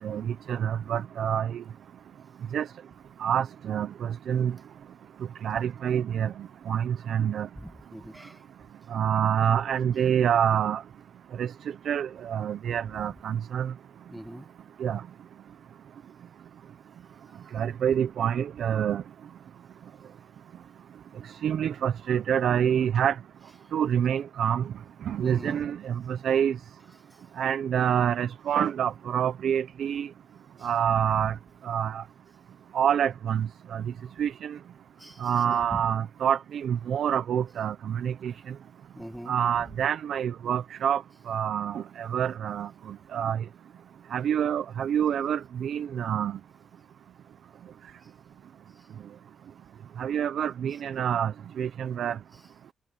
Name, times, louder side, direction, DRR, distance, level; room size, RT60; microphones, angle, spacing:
voice 1, 0.0-1.6 2.5-2.7 3.2-4.5 5.4-6.3 6.7-7.5 8.9-10.8 11.4-11.5 11.9-13.7 14.8-15.0 17.5-19.0 21.4-23.2 23.7-24.6 25.1-26.6 27.4-30.1 30.6-31.3 31.6-32.0 32.7-33.8 34.2-34.6 35.2-38.3 39.3-41.0 41.3-42.7 43.1-43.4 44.1-46.4 50.0-52.2, right 9 dB, 60° right, 0.7 m, -27 dB
voice 2, 7.6-8.4 14.1-14.5 25.2-25.6 30.6-30.7 31.1-31.3 34.0-34.1 35.0-35.8 39.0-39.3, equal, ahead, 1.9 m, -42 dB
cardioid pair, 150°, 0 cm